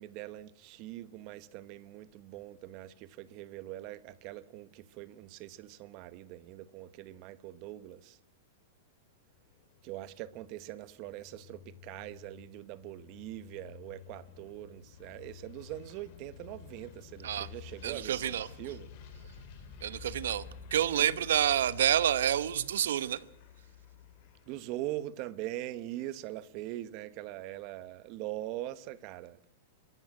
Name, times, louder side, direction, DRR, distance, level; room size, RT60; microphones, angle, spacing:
voice 1, 0.0-8.2 9.8-18.9 20.9-21.2 24.5-29.4, right 14 dB, 35° right, 0.9 m, -42 dB
sound 1, 9.2-24.9, left 7 dB, 40° left, 2.6 m, -51 dB
voice 2, 17.8-18.5 19.8-20.4 20.7-23.2, right 10 dB, 85° right, 1.0 m, -28 dB
26.0 x 13.5 x 7.7 m
supercardioid pair, 165°, 0 cm